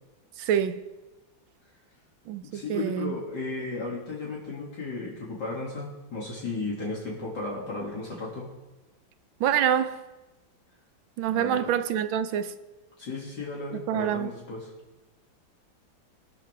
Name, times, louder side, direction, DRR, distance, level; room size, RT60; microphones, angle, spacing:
voice 1, 0.4-0.8 2.3-3.1 9.4-10.0 11.2-12.5 13.9-14.3, right 9 dB, 85° right, 1.6 m, -26 dB
voice 2, 2.4-8.5 11.3-11.7 13.0-14.7, left 3 dB, 60° left, 3.2 m, -34 dB
22.0 x 12.5 x 3.5 m
omnidirectional pair, 2.1 m